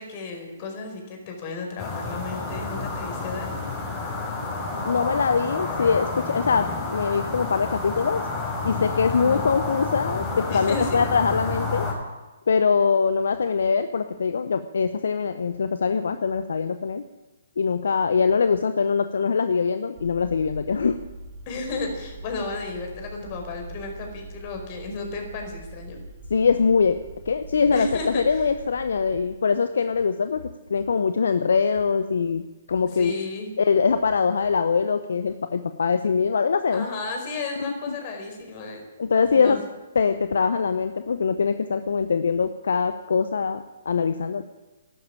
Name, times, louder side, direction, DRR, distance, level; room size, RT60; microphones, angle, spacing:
voice 1, 0.0-3.5 9.1-9.5 10.5-11.1 21.5-26.0 27.7-28.2 32.9-33.5 36.7-38.8 39.3-39.6, left 3 dB, 40° left, 3 dB, 4.8 m, -33 dB
sound 1, 1.8-11.9, left 3 dB, 20° left, 5.4 m, -30 dB
voice 2, 4.8-8.3 8.6-11.9 12.5-17.0 17.6-21.0 26.3-27.0 27.3-30.4 30.7-32.4 32.7-33.1 33.6-36.9 37.9-38.0 39.0-39.6 39.9-44.4, left 5 dB, 70° left, 10 dB, 0.7 m, -23 dB
sound 2, 20.0-29.4, right 2 dB, 40° right, 3.1 m, -42 dB
12.5 x 11.5 x 8.9 m, 1.2 s
figure-of-eight pair, 130°, 0 cm